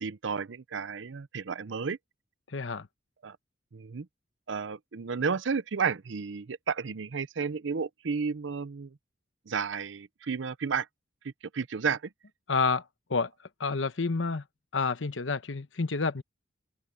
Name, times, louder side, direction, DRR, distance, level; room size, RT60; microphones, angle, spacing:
voice 1, 0.0-2.0 3.2-3.4 3.7-4.1 4.5-9.0 9.5-10.9 11.2-12.0, right 5 dB, 75° right, 0.6 m, -32 dB
voice 2, 2.5-2.9 12.5-12.8 13.1-13.3 13.6-14.4 14.7-16.2, left 4 dB, 75° left, 1.0 m, -29 dB
open air
head